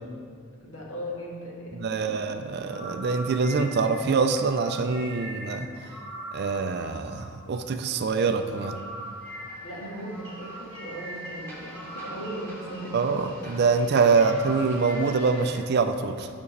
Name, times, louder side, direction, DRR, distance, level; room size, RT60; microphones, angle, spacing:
voice 1, 0.6-2.3 9.6-13.1 14.2-14.4, equal, 60° left, -4 dB, 1.7 m, -38 dB
voice 2, 1.8-5.9 6.3-8.8 12.9-16.3, right 4 dB, 45° right, 8 dB, 0.4 m, -25 dB
sound 1, 2.5-15.5, equal, 10° left, 1.6 m, -41 dB
11.0 x 5.9 x 3.3 m, 2.2 s
head